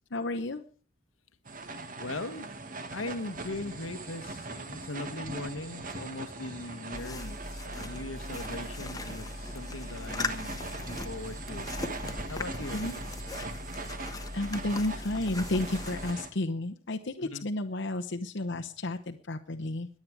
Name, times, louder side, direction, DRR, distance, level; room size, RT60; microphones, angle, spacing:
voice 1, 0.1-0.6 12.7-13.0 14.3-19.9, left 2 dB, 60° left, 4 dB, 1.0 m, -32 dB
sound 1, 1.5-16.3, right 2 dB, 45° right, 1.7 m, -41 dB
voice 2, 2.0-2.5 2.9-7.4 7.6-11.7 12.3-12.8 17.3-17.4, left 2 dB, 80° left, 11 dB, 1.3 m, -39 dB
sound 2, 6.9-16.1, left 2 dB, 20° left, 1.1 m, -39 dB
22.0 x 8.7 x 4.8 m, 0.40 s
head